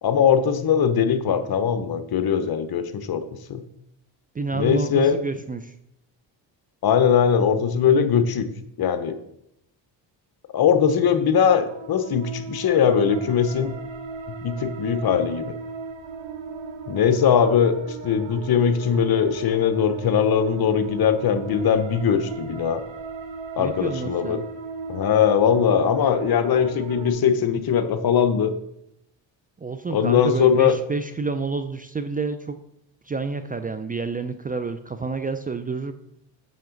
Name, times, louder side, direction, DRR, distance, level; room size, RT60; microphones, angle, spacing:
voice 1, 0.0-3.2 3.5-3.6 4.5-5.2 6.8-8.5 8.8-9.1 10.5-13.8 14.4-15.5 16.9-17.7 18.0-22.8 23.6-24.4 24.9-28.5 29.9-30.7, left 7 dB, 55° left, 10 dB, 0.9 m, -20 dB
voice 2, 4.3-5.7 23.6-24.5 29.6-32.6 33.0-35.9, right 4 dB, 20° right, 9 dB, 0.4 m, -29 dB
sound 1, 11.6-27.1, right 5 dB, 80° right, 1.2 m, -37 dB
7.5 x 5.8 x 3.9 m, 0.80 s
cardioid pair, 75°, 45 cm